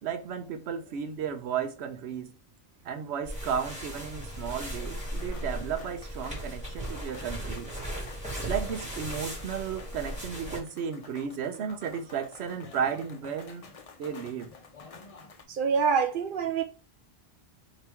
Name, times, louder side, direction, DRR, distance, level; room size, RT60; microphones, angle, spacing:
voice 1, 0.0-2.3 2.8-7.7 8.5-13.7 14.0-14.5, right 7 dB, 90° right, 0.9 m, -34 dB
sound 1, 3.2-10.6, equal, 5° right, 1.9 m, -37 dB
sound 2, 4.4-15.4, left 4 dB, 45° left, 0.5 m, -50 dB
voice 2, 15.5-16.6, right 6 dB, 60° right, 0.6 m, -26 dB
3.4 x 2.9 x 4.4 m
omnidirectional pair, 1.1 m